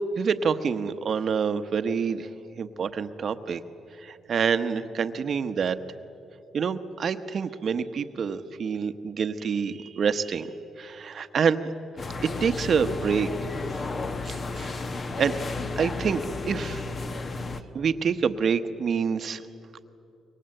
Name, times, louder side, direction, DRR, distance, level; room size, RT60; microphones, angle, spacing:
voice 1, 0.1-2.3 2.6-3.6 4.0-5.8 6.5-10.5 10.8-11.7 12.4-13.3 14.3-14.8 15.2-15.3 15.8-16.2 16.5-16.8 17.7-19.4, right 6 dB, 55° right, 11 dB, 1.1 m, -27 dB
sound 1, 12.0-17.6, left 3 dB, 40° left, 1.2 m, -33 dB
25.5 x 23.0 x 7.9 m, 2.9 s
cardioid pair, 90°, 0 cm